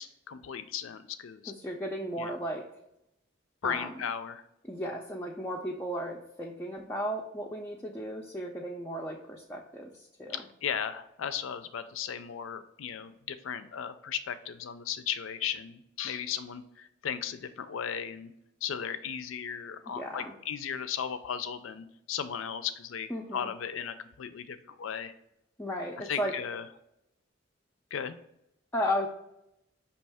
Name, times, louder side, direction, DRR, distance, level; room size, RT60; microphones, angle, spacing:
voice 1, 0.0-1.5 2.2-2.4 3.6-4.4 10.3-18.3 18.6-25.1 26.0-26.6 27.9-28.2, left 8 dB, 85° left, 12 dB, 0.4 m, -36 dB
voice 2, 1.5-2.7 3.6-3.9 4.7-10.5 19.9-20.4 23.1-23.5 25.6-26.3 28.7-29.1, equal, 10° left, -1 dB, 0.4 m, -35 dB
5.4 x 2.9 x 3.4 m, 0.83 s
head